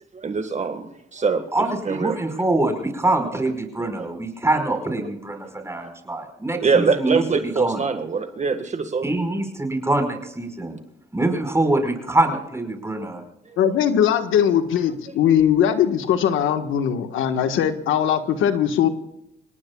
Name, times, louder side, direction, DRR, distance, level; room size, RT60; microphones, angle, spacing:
voice 1, 0.1-1.4 1.8-2.3 5.8-5.9 6.6-9.1, right 5 dB, 35° right, 7 dB, 1.8 m, -23 dB
voice 2, 1.5-7.2 7.6-7.8 9.0-10.8 11.1-13.2, right 2 dB, 15° right, 5 dB, 5.1 m, -24 dB
voice 3, 13.6-18.9, left 9 dB, 85° left, 8 dB, 1.5 m, -20 dB
28.0 x 18.5 x 2.4 m, 0.82 s
cardioid pair, 90°, 20 cm